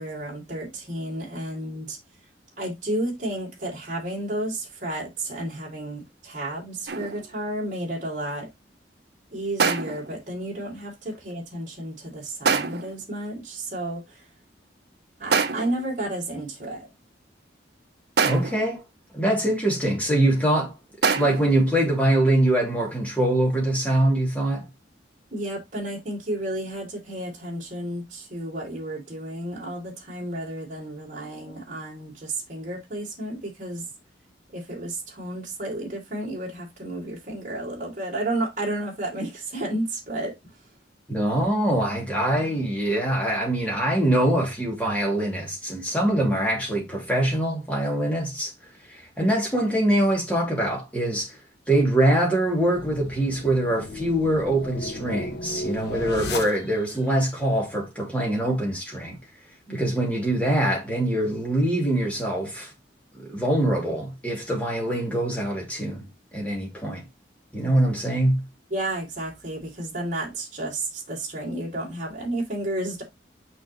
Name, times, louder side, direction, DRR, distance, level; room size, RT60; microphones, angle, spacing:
voice 1, 0.0-2.0 2.6-8.5 9.3-14.2 15.2-16.9 25.3-33.8 34.5-40.5 59.7-59.8 68.7-73.0, right 1 dB, 45° right, 3.1 m, -32 dB
sound 1, 6.9-7.3 9.6-10.2 12.4-13.0 15.3-15.9 18.2-18.7 21.0-21.6, right 5 dB, 60° right, 0.7 m, -25 dB
voice 2, 18.2-18.8 19.1-20.7 21.1-24.6 41.1-48.5 48.9-51.4 51.7-59.2 59.7-62.7 63.2-66.0 66.3-67.0 67.5-68.4, right 1 dB, 10° left, 2.6 m, -23 dB
sound 2, 52.5-57.0, left 2 dB, 65° left, 1.0 m, -35 dB
6.2 x 5.5 x 3.1 m
head